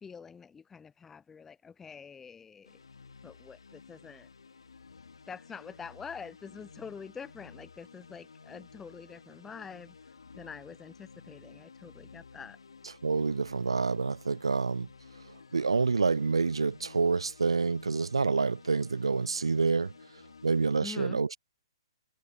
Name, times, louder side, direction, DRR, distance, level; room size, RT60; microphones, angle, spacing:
voice 1, 0.0-2.8 3.2-4.3 5.3-12.6 20.8-21.2, left 6 dB, 10° left, 0.3 m, -46 dB
sound 1, 2.6-20.8, left 5 dB, 75° left, 1.5 m, -53 dB
voice 2, 13.0-14.9 15.5-19.9 20.4-21.4, right 4 dB, 80° right, 0.4 m, -27 dB
figure-of-eight pair, 125°, 3 cm